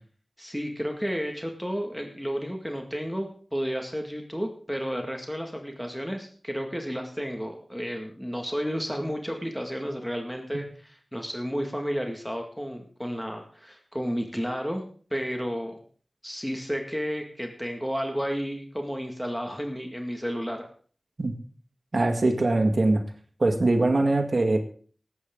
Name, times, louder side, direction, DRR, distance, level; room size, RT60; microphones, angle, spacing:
voice 1, 0.4-14.8 15.1-15.8 16.2-20.7, equal, ahead, 3 dB, 2.0 m, -32 dB
voice 2, 21.9-23.0 23.4-24.6, right 2 dB, 60° right, 5 dB, 1.9 m, -22 dB
19.0 x 8.7 x 3.8 m, 0.43 s
wide cardioid pair, 55°, 0 cm